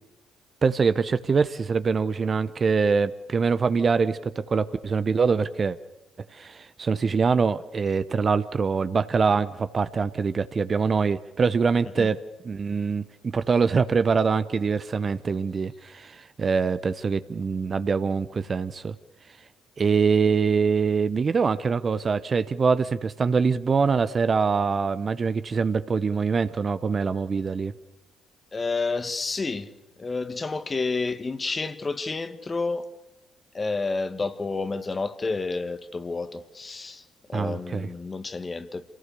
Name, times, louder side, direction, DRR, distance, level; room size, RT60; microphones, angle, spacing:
voice 1, 0.6-5.8 6.3-12.2 12.4-18.9 19.8-27.7 37.3-37.9, right 5 dB, 40° right, 0.9 m, -24 dB
voice 2, 28.5-29.7 30.0-32.8 33.5-37.0 37.3-38.8, left 3 dB, 30° left, 1.6 m, -30 dB
27.5 x 18.0 x 6.9 m
hypercardioid pair, 50°, 0 cm